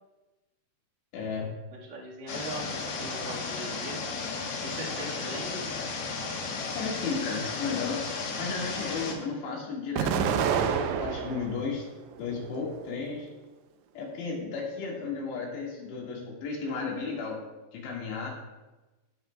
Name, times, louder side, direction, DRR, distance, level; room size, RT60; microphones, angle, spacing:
voice 1, 1.1-1.5 6.8-8.0 8.4-10.7 11.0-11.8 12.2-13.3 13.9-17.4 17.7-18.3, left 4 dB, 85° left, -3 dB, 4.1 m, -34 dB
voice 2, 1.7-4.0 4.6-5.7, right 2 dB, 65° right, -5 dB, 1.0 m, -40 dB
sound 1, 2.3-9.1, left 4 dB, 65° left, 2.4 m, -34 dB
Explosion, 10.0-11.6 12.1-13.0, right 7 dB, 85° right, 2.8 m, -28 dB
17.5 x 6.5 x 2.3 m, 1.1 s
omnidirectional pair, 4.9 m